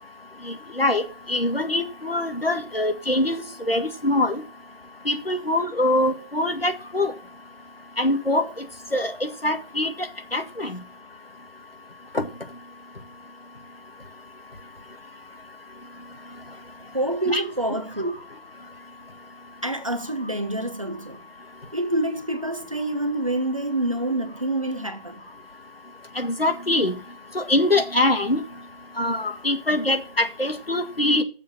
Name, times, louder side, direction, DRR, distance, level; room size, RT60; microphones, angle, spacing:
voice 1, 0.4-4.4 5.1-7.1 8.0-8.7 8.9-10.1 10.3-10.8 12.1-12.2 17.3-17.4 26.2-26.9 27.3-28.4 29.0-31.2, left 1 dB, 75° left, 1.8 m, -23 dB
voice 2, 16.9-18.1 19.6-21.2 21.7-25.2, right 1 dB, 35° right, 0.8 m, -27 dB
7.3 x 6.7 x 6.2 m
figure-of-eight pair, 170°, 30 cm